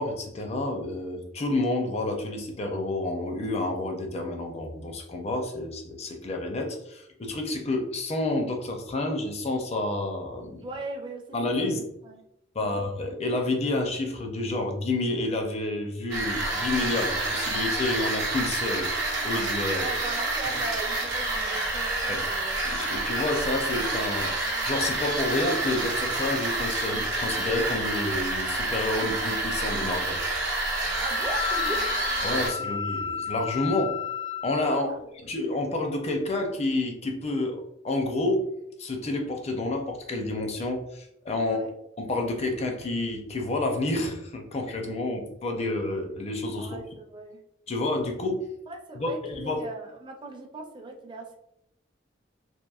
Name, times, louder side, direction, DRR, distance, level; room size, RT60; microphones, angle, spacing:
voice 1, 0.0-10.6 11.3-11.8 12.5-18.9 19.2-19.9 22.1-22.2 22.6-24.4 24.6-30.2 32.2-33.9 34.4-34.9 35.2-38.4 38.8-41.6 42.0-46.8 47.7-48.4 49.0-49.6, left 2 dB, 35° left, 3 dB, 0.5 m, -29 dB
voice 2, 10.6-12.2 12.6-12.9 19.7-22.6 31.0-31.9 34.7-35.1 41.4-41.7 46.6-47.4 48.7-51.4, right 2 dB, 25° right, 1 dB, 0.4 m, -39 dB
sound 1, 16.1-32.5, right 2 dB, 85° right, 0.7 m, -28 dB
Wind instrument woodwind instrument, 30.7-34.7, left 8 dB, 85° left, 0.9 m, -33 dB
2.9 x 2.5 x 2.3 m, 0.79 s
head